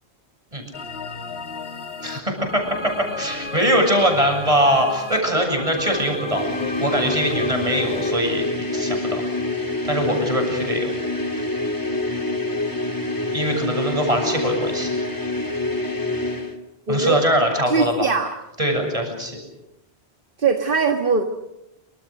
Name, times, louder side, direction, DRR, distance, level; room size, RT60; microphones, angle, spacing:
sound 1, 0.7-8.1, left 3 dB, 70° left, 2.4 m, -34 dB
voice 1, 2.0-2.6 3.2-6.4 6.8-9.2 9.9-10.9 13.3-14.9 16.9-18.1 18.6-19.4, equal, 30° right, 3 dB, 7.9 m, -22 dB
sound 2, 6.2-16.6, left 2 dB, 20° left, 2.4 m, -26 dB
voice 2, 16.9-17.2 17.7-18.3 20.4-21.2, right 5 dB, 55° right, 5 dB, 1.8 m, -20 dB
28.0 x 26.0 x 6.6 m, 0.89 s
omnidirectional pair, 1.1 m